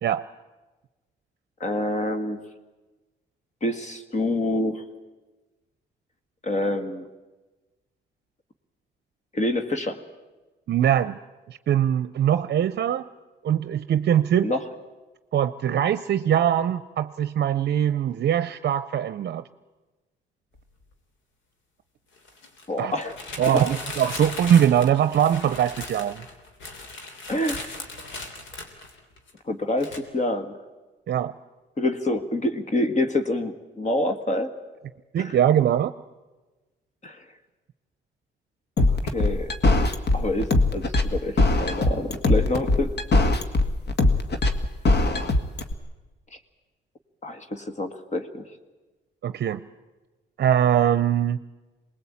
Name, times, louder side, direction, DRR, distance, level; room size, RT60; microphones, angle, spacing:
voice 1, 1.6-2.4 3.6-4.8 6.4-7.1 9.3-10.0 14.4-14.6 22.7-23.2 23.5-23.6 27.3-27.7 29.4-30.6 31.8-34.5 35.2-35.3 37.0-37.2 39.0-39.5 40.1-42.9 47.2-48.5, left 1 dB, 35° left, 7 dB, 1.8 m, -27 dB
voice 2, 10.7-11.2 11.5-13.1 13.4-14.5 15.3-19.4 22.8-22.9 23.4-26.2 31.1-31.3 35.1-35.9 49.2-49.6 50.4-51.4, right 10 dB, 55° right, 12 dB, 0.7 m, -22 dB
sound 1, 20.6-20.7 22.2-29.4 29.8-30.0, left 3 dB, 75° left, 3.3 m, -38 dB
sound 2, 38.8-45.7, left 2 dB, 55° left, 1.9 m, -21 dB
23.5 x 20.0 x 8.6 m, 1.2 s
cardioid pair, 90°, 20 cm